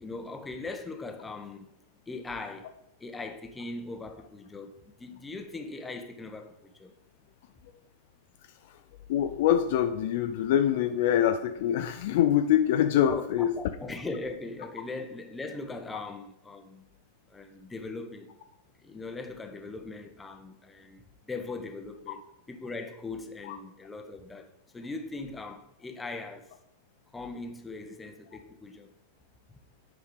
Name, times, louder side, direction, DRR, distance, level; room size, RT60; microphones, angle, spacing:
voice 1, 0.0-1.7 2.1-6.9 13.1-16.8 17.3-18.3 18.8-22.2 22.5-26.5 27.1-28.9, left 3 dB, 10° left, 1.0 m, -40 dB
voice 2, 9.1-13.5 23.4-23.6, left 10 dB, 50° left, 0.5 m, -25 dB
9.2 x 4.9 x 4.8 m
figure-of-eight pair, 90°, 0 cm